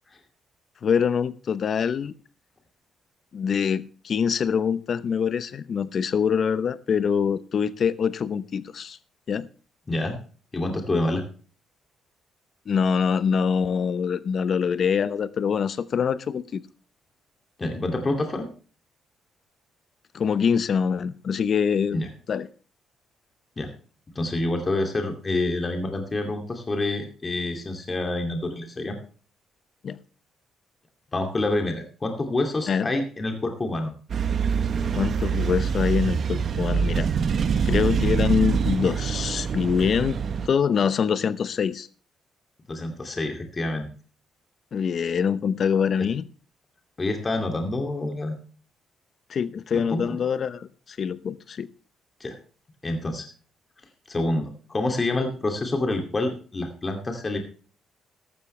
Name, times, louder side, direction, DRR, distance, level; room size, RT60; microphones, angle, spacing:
voice 1, 0.8-2.1 3.3-9.0 9.3-9.5 12.7-16.6 20.1-22.0 22.3-22.5 29.8-30.0 32.7-32.9 34.9-37.1 37.6-40.2 40.4-41.9 44.7-46.3 49.3-51.7, left 7 dB, 55° left, 0.8 m, -24 dB
voice 2, 9.9-10.2 10.5-11.2 17.6-18.5 21.9-22.1 23.6-23.7 24.1-29.0 31.1-33.9 42.7-43.9 47.0-48.4 49.7-50.2 52.2-52.4 52.8-53.3 54.1-57.4, left 2 dB, 30° left, 2.5 m, -27 dB
sound 1, 34.1-40.5, right 6 dB, 55° right, 1.0 m, -25 dB
14.5 x 12.5 x 3.3 m
cardioid pair, 90°, 0 cm